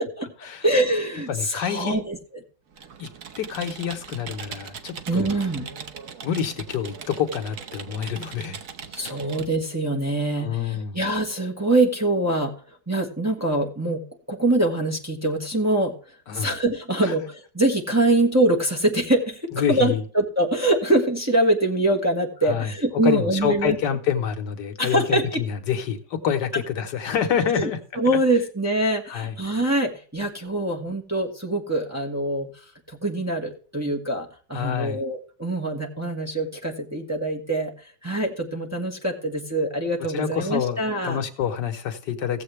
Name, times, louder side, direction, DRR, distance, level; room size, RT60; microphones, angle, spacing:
voice 1, 0.6-2.2 5.1-5.7 8.9-12.5 12.9-15.9 16.3-23.8 24.8-25.4 26.5-26.6 27.5-27.7 27.9-32.5 32.9-37.7 38.0-41.2, right 1 dB, 10° right, 0 dB, 1.5 m, -24 dB
voice 2, 1.3-2.0 3.0-3.1 3.4-5.3 6.2-8.6 10.4-11.1 16.3-16.5 17.0-17.1 19.5-20.0 22.4-22.7 23.0-27.8 29.1-29.3 34.5-35.0 40.1-42.4, left 8 dB, 75° left, 7 dB, 1.7 m, -27 dB
Computer keyboard, 2.7-9.6, right 6 dB, 55° right, 1.3 m, -40 dB
16.0 x 7.6 x 3.3 m, 0.40 s
omnidirectional pair, 1.9 m